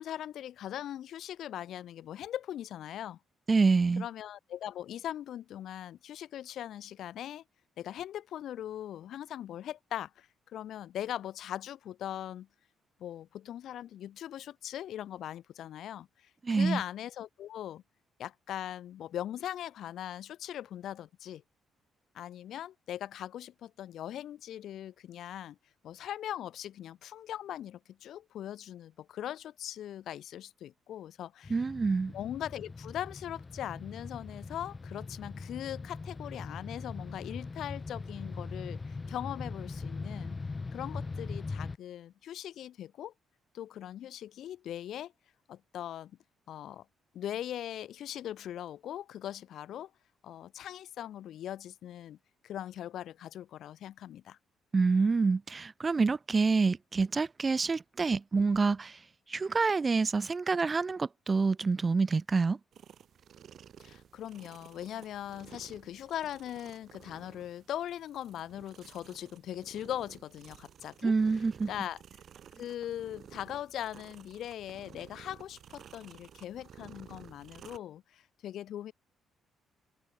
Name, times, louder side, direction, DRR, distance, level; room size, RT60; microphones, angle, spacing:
voice 1, 0.0-3.2 4.0-7.4 7.8-12.5 13.0-17.8 18.2-21.4 22.1-25.6 25.8-31.5 32.1-40.4 40.7-43.1 43.5-45.1 45.5-46.1 46.5-46.8 47.1-49.9 50.2-52.2 52.4-54.4 63.8-71.1 71.7-72.0 72.6-78.9, left 11 dB, 75° left, 4.8 m, -40 dB
voice 2, 3.5-4.0 16.4-16.8 31.5-32.1 54.7-59.0 59.3-62.6 71.0-71.7, right 4 dB, 30° right, 0.6 m, -27 dB
sound 1, 31.4-41.8, left 3 dB, 25° left, 1.2 m, -41 dB
sound 2, 62.7-77.8, right 9 dB, 60° right, 4.8 m, -54 dB
cardioid pair, 90°, 0 cm